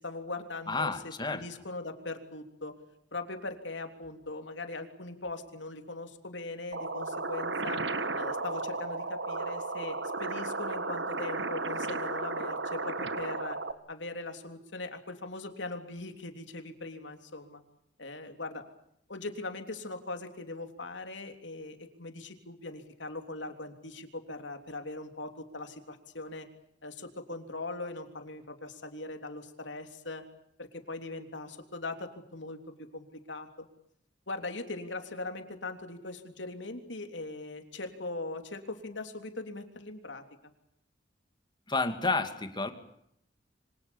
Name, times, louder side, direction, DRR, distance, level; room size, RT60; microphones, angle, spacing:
voice 1, 0.0-2.7 3.1-7.8 8.1-13.6 13.9-17.6 18.0-18.6 19.1-26.5 26.8-30.2 30.6-33.7 34.3-40.2, left 2 dB, 85° left, 6 dB, 3.4 m, -40 dB
voice 2, 0.7-1.4 41.7-42.7, left 3 dB, 25° left, 8 dB, 2.5 m, -30 dB
sound 1, 6.7-13.7, right 3 dB, 75° right, 1.7 m, -34 dB
27.0 x 25.5 x 7.2 m, 0.75 s
head